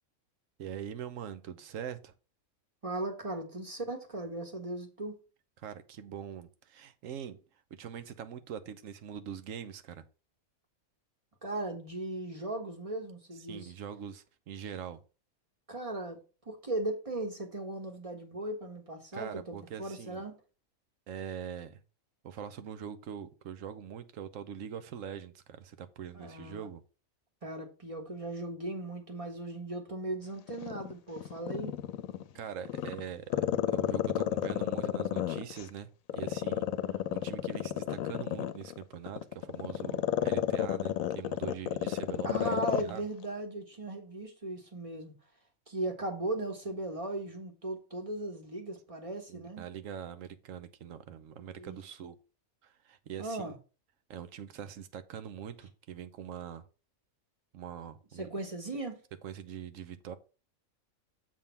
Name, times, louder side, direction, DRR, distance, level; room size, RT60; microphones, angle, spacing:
voice 1, 0.6-2.1 5.6-7.4 7.7-10.0 13.5-15.0 19.1-20.2 21.1-21.8 22.2-26.8 32.3-43.0 49.3-52.1 52.6-53.5 54.1-56.6 57.5-58.3 59.2-60.2, right 8 dB, 75° right, 1.1 m, -43 dB
voice 2, 2.8-5.2 11.4-13.7 15.7-16.2 16.4-20.3 26.1-26.7 27.4-31.7 42.2-45.1 45.7-49.6 51.5-51.8 53.2-53.5 58.2-59.0, right 2 dB, 25° right, 1.5 m, -37 dB
Growling, 30.5-32.2 32.7-35.7 36.1-42.9 43.2-43.3, left 11 dB, 80° left, 1.0 m, -31 dB
7.4 x 3.6 x 5.7 m
omnidirectional pair, 1.4 m